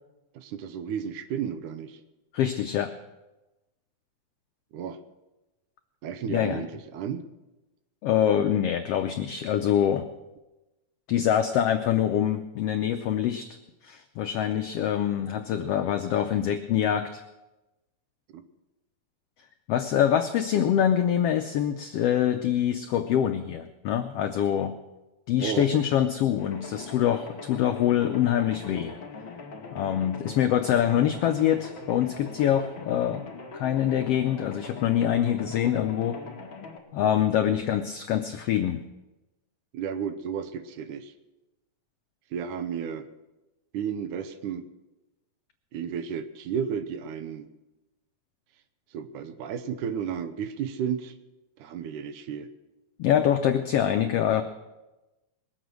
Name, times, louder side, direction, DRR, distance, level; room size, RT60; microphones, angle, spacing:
voice 1, 0.3-2.0 4.7-5.0 6.0-7.3 18.3-18.4 25.4-25.7 39.7-41.1 42.3-43.1 43.7-44.6 45.7-47.5 48.9-51.2 51.6-52.5, right 7 dB, 80° right, 11 dB, 2.3 m, -33 dB
voice 2, 2.3-2.9 6.3-6.6 8.0-10.1 11.1-13.5 13.8-17.2 19.7-24.7 25.3-29.0 29.7-33.2 33.5-36.2 36.9-38.8 53.0-54.4, left 10 dB, 80° left, 8 dB, 1.3 m, -25 dB
sound 1, 26.4-36.8, left 4 dB, 45° left, 2.2 m, -42 dB
21.0 x 8.2 x 6.1 m, 1.0 s
omnidirectional pair, 3.6 m